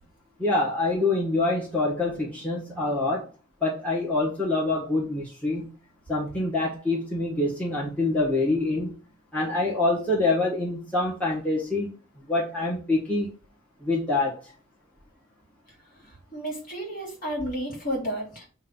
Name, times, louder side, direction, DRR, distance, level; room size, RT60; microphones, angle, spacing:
voice 1, 0.4-3.2 3.6-5.6 6.1-8.9 9.3-11.9 12.3-13.3 13.8-14.4, left 2 dB, 5° left, -4 dB, 1.7 m, -25 dB
voice 2, 16.3-18.5, equal, 40° left, -1 dB, 2.7 m, -31 dB
8.0 x 2.7 x 5.6 m, 0.36 s
head